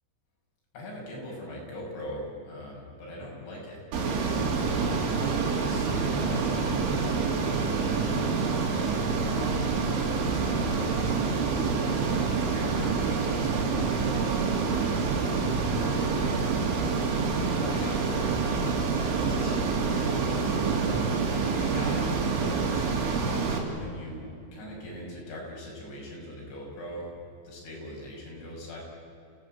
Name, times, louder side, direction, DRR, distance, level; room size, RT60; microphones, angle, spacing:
voice 1, 0.7-5.0 5.7-8.1 8.6-9.1 10.2-15.0 15.4-16.4 17.2-18.8 19.2-20.5 20.8-22.9 23.7-27.1 27.4-28.8, left 1 dB, 70° left, -3 dB, 8.7 m, -41 dB
Ocean, 3.9-23.6, right 4 dB, 85° right, 5.3 m, -27 dB
29.5 x 17.0 x 9.0 m, 2.5 s
omnidirectional pair, 5.3 m